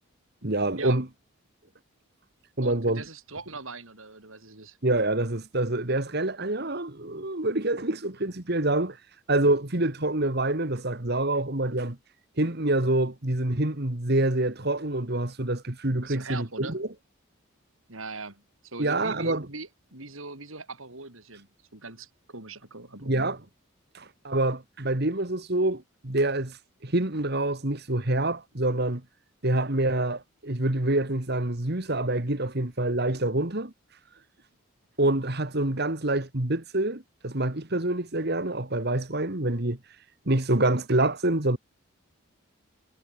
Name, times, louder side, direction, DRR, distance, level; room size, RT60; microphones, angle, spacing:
voice 1, 0.4-1.1 2.6-3.0 4.8-9.0 9.3-12.0 12.4-16.9 18.8-19.5 23.0-23.4 23.9-26.6 26.8-29.0 29.4-33.7 35.0-39.8 40.3-41.6, right 2 dB, 50° right, 2.1 m, -26 dB
voice 2, 2.6-4.8 16.1-16.8 17.9-23.3, right 3 dB, 70° right, 4.7 m, -41 dB
head